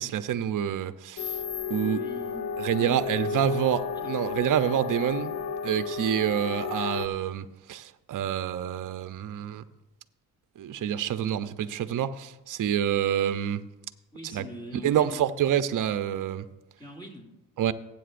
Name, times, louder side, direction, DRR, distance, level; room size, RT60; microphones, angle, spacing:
voice 1, 0.0-1.3 1.7-2.0 2.6-5.3 5.6-9.6 10.6-13.6 14.3-14.4 14.8-16.5 17.6-17.7, right 10 dB, 55° right, 0.7 m, -27 dB
sound 1, 1.2-7.1, left 6 dB, 75° left, 0.9 m, -32 dB
voice 2, 1.8-3.5 3.9-4.1 14.1-15.3 16.8-17.3, left 1 dB, 10° left, 2.5 m, -43 dB
19.0 x 8.6 x 2.6 m
supercardioid pair, 70°, 38 cm